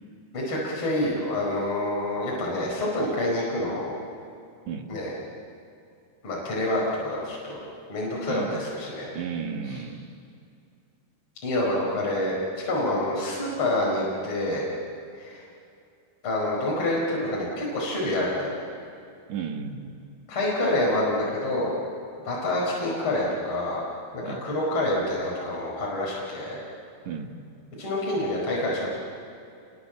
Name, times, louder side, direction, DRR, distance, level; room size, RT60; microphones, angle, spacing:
voice 1, 0.3-4.0 4.9-5.1 6.2-7.6 7.9-9.1 9.7-9.8 11.4-14.7 15.2-15.4 16.2-18.6 20.3-21.7 22.2-23.8 24.1-26.6 27.8-28.9, left 1 dB, 30° left, -4 dB, 5.7 m, -27 dB
voice 2, 8.3-8.6 9.1-10.1 19.3-20.0 24.2-24.4 27.1-27.3, right 6 dB, 60° right, 4 dB, 2.5 m, -33 dB
28.5 x 23.5 x 7.6 m, 2.5 s
omnidirectional pair, 4.4 m